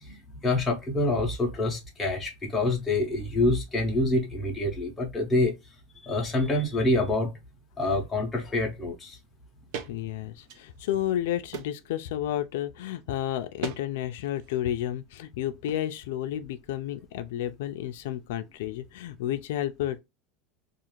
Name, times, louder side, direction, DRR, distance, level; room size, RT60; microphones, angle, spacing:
voice 1, 0.0-5.6 6.0-7.4 7.8-9.2, left 2 dB, 10° left, 0.7 m, -26 dB
sound 1, 9.7-9.9 10.4-11.1 11.5-11.9 13.6-13.9 14.1-14.6 15.7-15.8, right 7 dB, 55° right, 0.5 m, -38 dB
voice 2, 9.9-20.0, left 12 dB, 75° left, 0.3 m, -31 dB
2.4 x 2.4 x 3.0 m
supercardioid pair, 180°, 0 cm